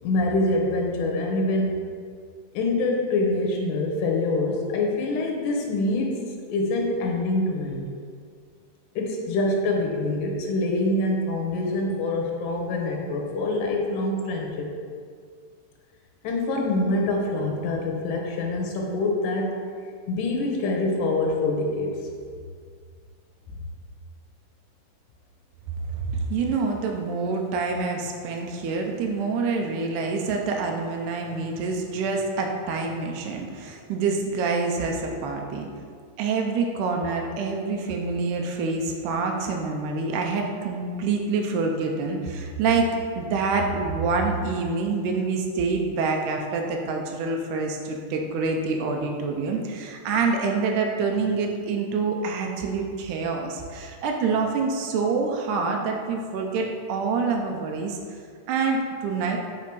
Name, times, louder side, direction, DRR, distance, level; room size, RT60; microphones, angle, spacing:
voice 1, 0.0-1.8 2.5-6.2 6.5-7.8 9.0-14.7 16.2-19.5 20.1-22.0, left 2 dB, 85° left, 0 dB, 2.3 m, -25 dB
voice 2, 25.9-35.7 36.2-42.9 43.2-58.0 58.5-59.4, right 4 dB, 90° right, 2 dB, 2.1 m, -26 dB
7.4 x 3.4 x 4.6 m, 2.1 s
omnidirectional pair, 3.5 m